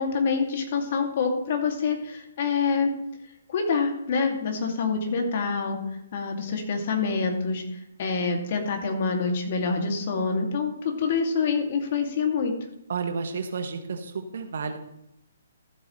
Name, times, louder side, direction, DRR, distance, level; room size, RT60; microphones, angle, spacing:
voice 1, 0.0-3.0 3.5-5.8 6.1-7.6 8.0-12.5, left 5 dB, 50° left, 3 dB, 2.4 m, -26 dB
voice 2, 12.9-14.8, right 5 dB, 60° right, 7 dB, 1.4 m, -31 dB
14.0 x 8.6 x 3.2 m, 0.82 s
figure-of-eight pair, 135°, 0 cm